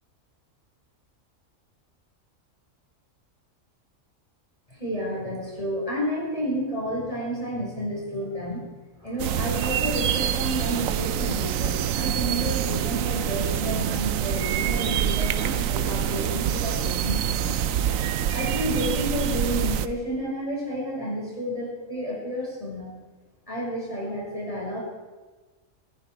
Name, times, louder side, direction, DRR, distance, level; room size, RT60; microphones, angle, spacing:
voice 1, 4.7-8.7 9.0-17.5 18.3-22.9 23.5-24.8, equal, 25° left, -5 dB, 5.4 m, -31 dB
sound 1, 9.2-19.9, right 9 dB, 80° right, 1.1 m, -26 dB
23.0 x 10.5 x 4.6 m, 1.3 s
omnidirectional pair, 1.4 m